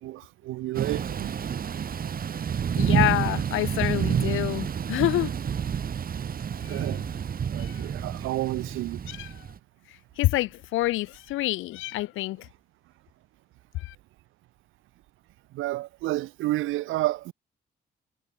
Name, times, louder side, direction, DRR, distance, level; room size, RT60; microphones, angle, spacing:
voice 1, 0.0-1.3 6.7-7.0 7.5-9.0 15.5-17.3, right 17 dB, 90° right, 1.1 m, -30 dB
Thunder / Rain, 0.7-9.6, right 7 dB, 45° right, 1.7 m, -29 dB
voice 2, 2.7-5.3 6.7-6.8 7.6-7.8 9.1-9.3 10.2-12.5 13.8-13.9, left 17 dB, 85° left, 0.6 m, -27 dB
cardioid pair, 90°, 20 cm